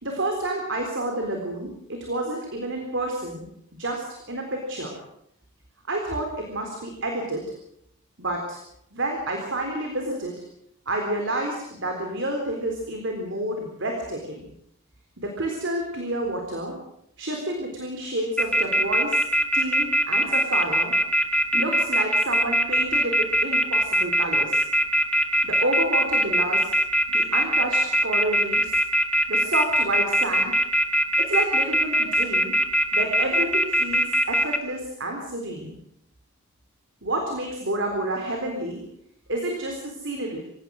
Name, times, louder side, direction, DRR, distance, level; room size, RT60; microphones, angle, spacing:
voice 1, 0.0-3.5 3.8-5.0 5.9-7.5 8.2-8.6 8.9-10.4 10.9-14.4 15.2-16.8 17.2-19.2 19.5-20.9 21.5-24.6 25.4-26.7 27.1-28.7 29.3-30.6 31.2-32.6 32.9-35.8 37.0-38.8 39.3-40.4, right 1 dB, 55° right, 2 dB, 3.8 m, -29 dB
sound 1, 18.4-34.6, equal, 5° left, 1.7 m, -21 dB
25.5 x 17.5 x 6.4 m, 0.75 s
head